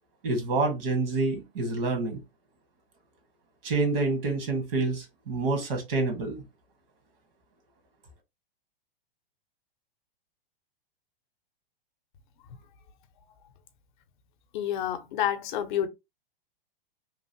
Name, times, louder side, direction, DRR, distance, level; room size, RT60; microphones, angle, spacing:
voice 1, 0.2-2.2 3.6-6.4, right 3 dB, 70° right, 1.3 m, -27 dB
voice 2, 14.5-15.9, left 10 dB, 55° left, 0.5 m, -29 dB
3.0 x 2.4 x 2.6 m
hypercardioid pair, 135°, 29 cm